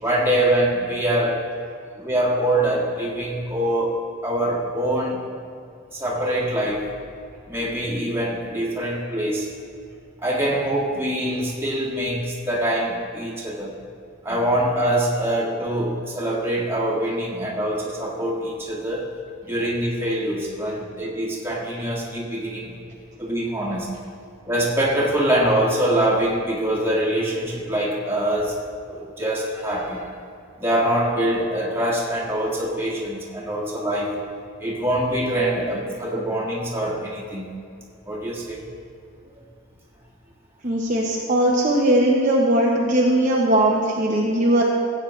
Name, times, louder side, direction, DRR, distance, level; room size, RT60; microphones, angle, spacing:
voice 1, 0.0-1.4 2.0-4.0 4.2-5.2 5.9-6.9 7.5-9.5 10.2-13.7 14.2-19.1 19.5-22.7 23.2-23.9 24.4-28.6 28.9-30.1 30.6-34.2 34.6-37.5 38.1-38.6, right 1 dB, 10° right, -5 dB, 1.9 m, -24 dB
voice 2, 40.6-44.6, right 1 dB, 35° right, -3 dB, 1.0 m, -19 dB
16.0 x 8.8 x 3.3 m, 2.5 s
head